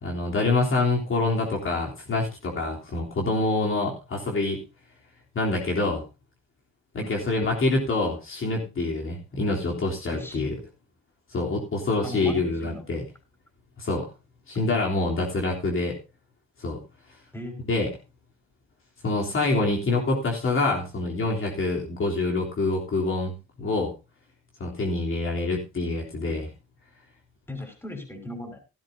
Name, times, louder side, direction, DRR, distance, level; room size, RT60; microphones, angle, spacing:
voice 1, 0.0-4.6 5.3-6.0 6.9-10.5 11.3-13.0 13.8-14.1 14.5-16.0 16.6-16.8 17.7-17.9 19.0-23.3 23.6-23.9 24.6-26.5, left 2 dB, 45° left, -1 dB, 3.4 m, -26 dB
voice 2, 10.1-10.5 12.0-12.8 17.3-17.6 27.5-28.6, left 1 dB, 10° left, 4 dB, 4.8 m, -37 dB
16.0 x 12.5 x 2.8 m, 0.28 s
cardioid pair, 90°, 30 cm